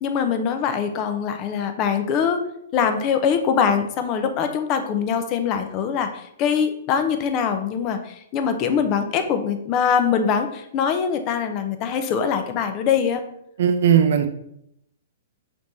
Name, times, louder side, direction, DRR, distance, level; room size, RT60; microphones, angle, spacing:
voice 1, 0.0-2.4 2.7-13.2, left 7 dB, 35° left, 8 dB, 0.6 m, -23 dB
voice 2, 13.6-14.3, right 8 dB, 65° right, 7 dB, 0.4 m, -17 dB
6.0 x 3.2 x 2.7 m, 0.75 s
hypercardioid pair, 135°, 0 cm